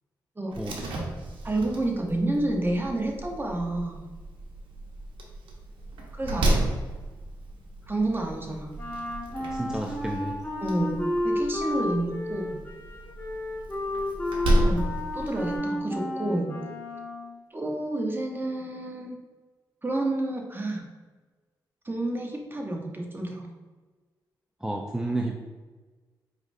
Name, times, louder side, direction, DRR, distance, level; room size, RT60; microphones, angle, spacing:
Slam, 0.5-15.6, right 1 dB, 85° right, 0.7 m, -32 dB
voice 1, 1.4-4.0 6.1-6.8 7.9-8.7 10.6-12.6 14.6-14.8 15.1-16.5 17.5-19.2 19.8-20.9 21.8-23.5, right 2 dB, 25° right, 1 dB, 0.9 m, -29 dB
Wind instrument woodwind instrument, 8.8-17.4, left 1 dB, 25° left, 1.5 m, -32 dB
voice 2, 9.5-10.4 24.6-25.4, right 1 dB, 5° right, 1 dB, 0.4 m, -31 dB
4.8 x 3.1 x 2.6 m, 1.3 s
cardioid pair, 55°, 8 cm